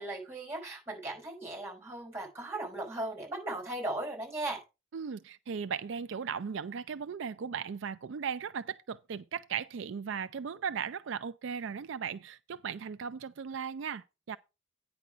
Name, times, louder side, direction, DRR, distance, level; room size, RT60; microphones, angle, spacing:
voice 1, 0.0-4.6, right 2 dB, 10° right, 4.7 m, -37 dB
voice 2, 4.9-14.4, right 6 dB, 65° right, 0.4 m, -37 dB
9.3 x 6.1 x 5.0 m
head